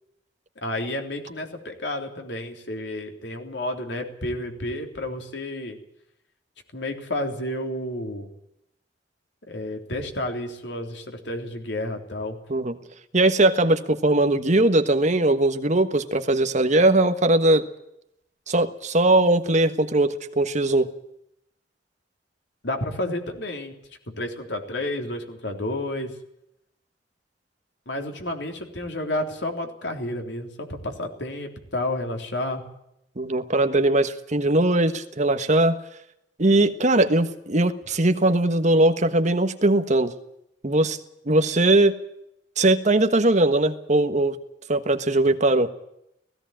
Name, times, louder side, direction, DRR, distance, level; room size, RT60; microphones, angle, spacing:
voice 1, 0.6-5.8 6.7-8.3 9.5-12.4 22.6-23.7 24.2-26.1 27.9-32.6, left 1 dB, 75° left, 4 dB, 3.6 m, -31 dB
voice 2, 13.1-17.6 18.5-20.9 33.2-35.8 36.4-40.1 40.6-41.0 41.3-41.9 42.6-44.4 44.7-45.7, right 2 dB, 40° right, 9 dB, 1.4 m, -20 dB
17.5 x 16.5 x 8.9 m, 0.79 s
head